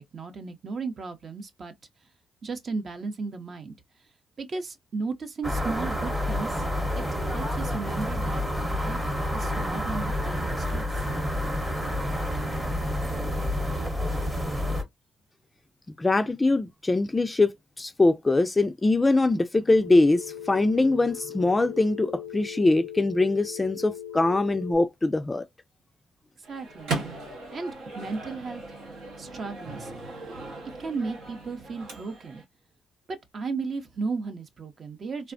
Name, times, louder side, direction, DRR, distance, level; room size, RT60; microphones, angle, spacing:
voice 1, 0.0-1.7 2.4-3.8 4.4-6.6 7.0-11.1 26.4-27.2 27.5-28.6 29.2-29.9 30.8-32.4 33.1-35.3, right 4 dB, 45° right, 0.6 m, -35 dB
sound 1, 5.4-14.8, left 1 dB, 15° right, 0.8 m, -29 dB
voice 2, 16.0-17.5 17.8-25.4, left 2 dB, 20° left, 0.3 m, -22 dB
Telephone, 19.8-24.8, left 10 dB, 80° left, 0.4 m, -39 dB
Microwave oven, 26.4-32.4, right 3 dB, 85° right, 0.9 m, -38 dB
3.3 x 2.0 x 2.5 m
cardioid pair, 90°, 0 cm